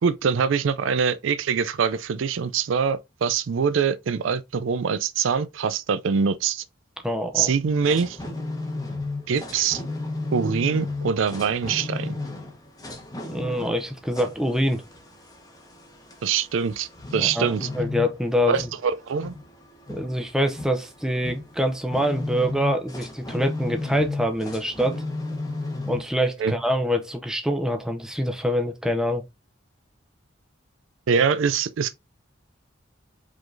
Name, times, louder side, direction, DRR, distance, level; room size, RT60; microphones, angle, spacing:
voice 1, 0.0-6.6 7.3-8.2 9.3-9.8 10.3-12.2 16.2-17.7 18.5-19.3 26.4-26.6 31.1-32.0, right 6 dB, 75° right, 0.4 m, -24 dB
voice 2, 7.0-7.5 12.8-12.9 13.3-14.8 17.2-18.7 19.9-25.0 25.9-29.2, equal, 5° right, 0.6 m, -25 dB
sound 1, 7.7-26.0, left 2 dB, 20° left, 0.9 m, -34 dB
5.0 x 3.8 x 2.6 m
head